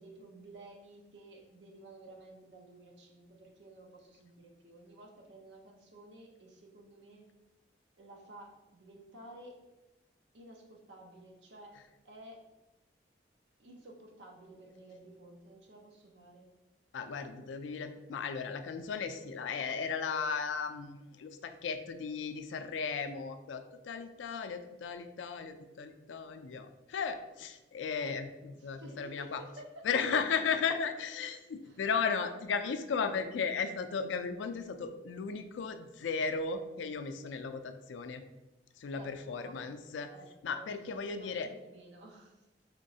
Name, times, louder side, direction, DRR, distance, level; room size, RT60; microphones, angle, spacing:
voice 1, 0.0-7.3 8.0-9.6 10.3-12.4 13.6-16.5 28.5-29.9 31.6-31.8 38.9-39.6 40.1-40.3 40.5-42.4, right 1 dB, 80° right, 1 dB, 0.7 m, -53 dB
voice 2, 16.9-29.4 29.8-38.2 38.8-40.1 40.4-41.5, left 5 dB, 85° left, 8 dB, 0.4 m, -35 dB
4.3 x 3.0 x 2.7 m, 1.0 s
head